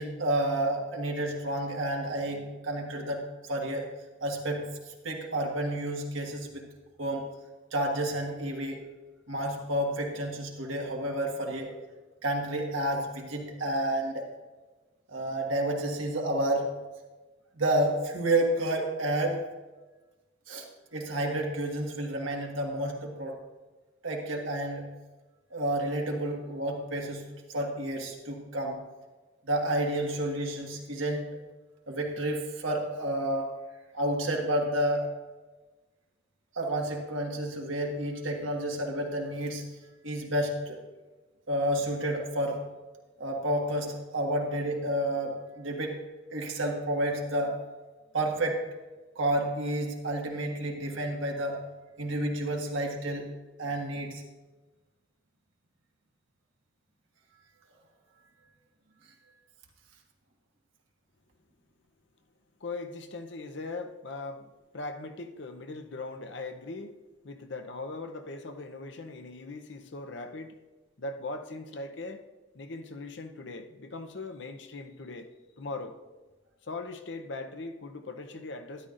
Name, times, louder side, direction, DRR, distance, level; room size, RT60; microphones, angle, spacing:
voice 1, 0.0-3.9 4.2-6.7 7.0-7.3 7.7-8.9 9.3-11.7 12.2-14.3 15.1-16.7 17.5-19.5 20.5-20.6 20.9-23.4 24.0-24.9 25.5-28.8 29.4-31.4 31.9-33.5 33.9-35.2 36.5-39.6 40.0-40.8 41.5-42.7 43.2-46.0 46.3-47.6 48.1-48.7 49.1-51.6 52.0-53.3 53.6-54.2, right 1 dB, 80° right, 1.6 m, -30 dB
voice 2, 62.6-67.0 67.2-70.6 71.0-72.3 72.5-75.3 75.6-76.0 76.6-78.9, left 3 dB, 60° left, 0.7 m, -40 dB
12.5 x 10.5 x 2.5 m
head